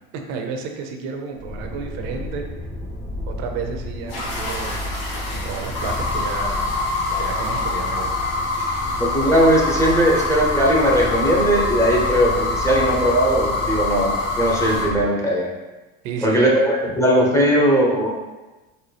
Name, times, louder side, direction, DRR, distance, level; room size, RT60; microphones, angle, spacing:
voice 1, 0.3-2.4 3.3-4.9 5.3-6.7 7.1-8.3 8.6-8.9 16.0-16.6, right 5 dB, 65° right, 3 dB, 0.7 m, -31 dB
sound 1, 1.3-15.0, left 1 dB, 35° left, 1.0 m, -32 dB
sound 2, 4.1-14.9, left 3 dB, 90° left, 1.2 m, -25 dB
voice 2, 9.0-15.5 16.2-18.1, right 1 dB, 10° left, -3 dB, 0.7 m, -18 dB
4.0 x 2.1 x 3.3 m, 1.1 s
supercardioid pair, 100°, 29 cm